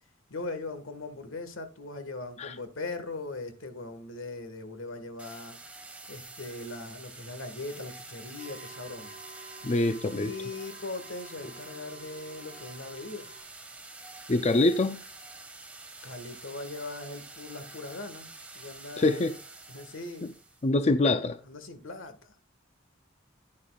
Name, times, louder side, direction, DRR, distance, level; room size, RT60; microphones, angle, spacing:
voice 1, 0.3-5.6 6.1-9.1 10.1-13.3 16.0-19.4 19.7-20.3 21.0-21.1 21.4-22.3, left 2 dB, 80° left, 1.6 m, -40 dB
sound 1, 5.2-20.7, right 3 dB, 5° right, 1.7 m, -47 dB
sound 2, 8.4-13.4, right 3 dB, 25° right, 3.3 m, -51 dB
voice 2, 9.6-10.3 14.3-15.0 19.0-19.3 20.6-21.4, left 2 dB, 35° left, 0.5 m, -24 dB
10.5 x 10.0 x 2.4 m
head